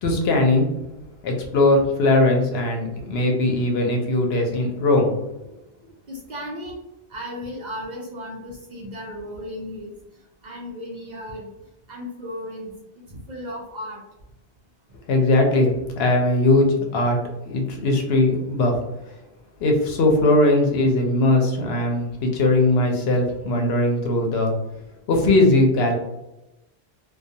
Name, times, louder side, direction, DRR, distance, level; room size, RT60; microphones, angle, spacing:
voice 1, 0.0-0.8 1.2-5.1 15.1-17.2 17.5-18.8 19.6-24.5 25.1-26.0, left 2 dB, 65° left, 2 dB, 0.8 m, -19 dB
voice 2, 6.1-6.8 7.1-9.9 10.4-11.5 11.9-12.7 13.1-14.0 18.9-19.0, equal, 65° right, -2 dB, 0.4 m, -35 dB
2.3 x 2.2 x 2.6 m, 0.93 s
omnidirectional pair, 1.3 m